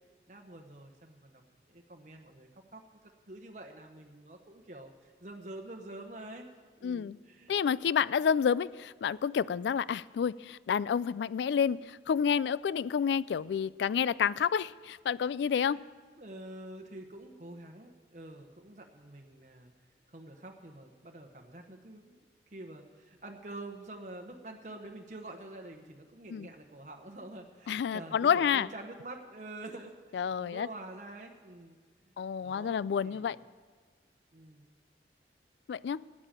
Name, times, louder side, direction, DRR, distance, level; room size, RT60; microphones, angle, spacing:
voice 1, 0.3-1.4 1.7-6.5 6.8-7.6 15.7-15.8 16.2-19.7 20.1-22.2 22.5-31.8 32.4-33.4 34.3-34.7, right 2 dB, 45° right, 3 dB, 1.0 m, -47 dB
voice 2, 6.8-7.2 7.5-15.8 26.3-26.5 27.7-28.7 30.1-30.7 32.2-33.4 35.7-36.0, left 7 dB, 80° left, 20 dB, 0.3 m, -29 dB
12.5 x 8.6 x 8.9 m, 1.5 s
head